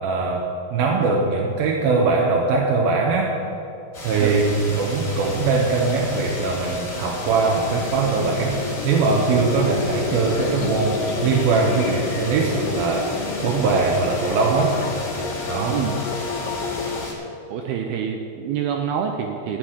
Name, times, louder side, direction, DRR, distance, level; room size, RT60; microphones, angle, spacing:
voice 1, 0.0-3.4 4.0-13.2 13.4-14.8 15.5-15.9, right 4 dB, 70° right, -1 dB, 2.4 m, -21 dB
sound 1, 3.9-17.1, left 1 dB, 25° left, 2.9 m, -34 dB
sound 2, 7.5-17.0, left 5 dB, 80° left, 2.0 m, -30 dB
voice 2, 17.5-19.6, right 8 dB, 90° right, 3 dB, 2.2 m, -26 dB
15.0 x 6.2 x 9.6 m, 2.8 s
omnidirectional pair, 5.2 m